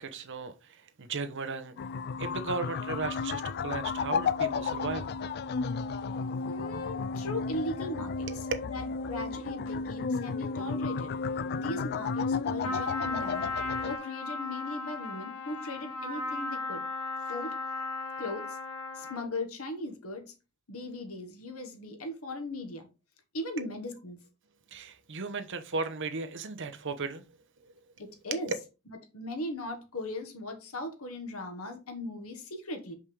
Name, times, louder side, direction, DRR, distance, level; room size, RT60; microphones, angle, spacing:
voice 1, 0.0-1.8 2.2-5.1 23.6-23.7 24.7-27.2 27.6-27.7, right 4 dB, 55° right, 0.9 m, -36 dB
sound 1, 1.8-14.0, left 5 dB, 45° left, 0.3 m, -33 dB
voice 2, 6.5-8.3 8.7-11.1 11.5-13.5 13.8-16.8 17.3-17.6 18.2-18.6 18.9-20.2 20.7-22.9 23.3-24.2 28.0-28.5 28.9-32.9, left 2 dB, 70° left, 1.6 m, -38 dB
Trumpet, 12.6-19.3, left 2 dB, 90° left, 1.6 m, -36 dB
6.2 x 5.5 x 3.4 m
head